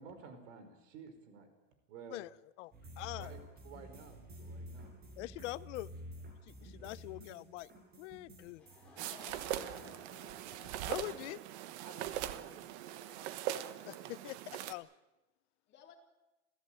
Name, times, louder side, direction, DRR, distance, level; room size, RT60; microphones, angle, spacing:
voice 1, 0.0-1.5 1.9-2.2 3.2-3.4 3.6-5.0 6.6-6.9 11.8-14.1, right 5 dB, 85° right, 5.1 m, -53 dB
voice 2, 2.6-3.3 5.2-5.9 6.5-7.7 8.0-8.7 10.9-11.4 13.8-14.4 14.6-14.9, left 19 dB, 75° left, 0.7 m, -43 dB
sound 1, 2.7-11.3, equal, 25° right, 5.8 m, -51 dB
Laughter / Crowd, 8.3-12.1, left 3 dB, 5° left, 7.3 m, -57 dB
sound 2, 9.0-14.7, right 12 dB, 65° right, 1.4 m, -41 dB
voice 3, 9.2-11.1 15.7-16.0, left 8 dB, 30° left, 4.3 m, -59 dB
27.5 x 15.5 x 9.1 m
supercardioid pair, 155°, 36 cm